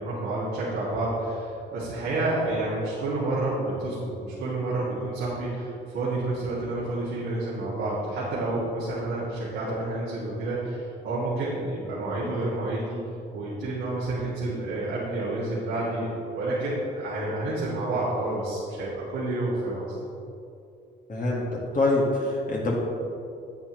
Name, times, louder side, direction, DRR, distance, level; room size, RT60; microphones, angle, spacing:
voice 1, 0.0-13.0 13.3-19.9, right 2 dB, 85° right, -9 dB, 2.2 m, -29 dB
voice 2, 21.1-22.7, left 2 dB, 40° left, -4 dB, 1.8 m, -25 dB
9.3 x 8.6 x 3.1 m, 2.6 s
cardioid pair, 90°, 20 cm